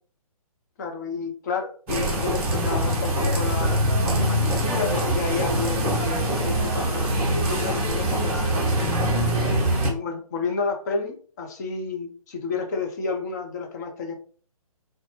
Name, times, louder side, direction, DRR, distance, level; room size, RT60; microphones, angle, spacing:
voice 1, 0.8-3.7 4.2-8.8 9.9-14.2, left 4 dB, 30° left, 2 dB, 0.6 m, -31 dB
sound 1, 1.9-9.9, right 1 dB, 20° right, 0.7 m, -23 dB
3.9 x 2.2 x 3.0 m, 0.43 s
figure-of-eight pair, 135°, 19 cm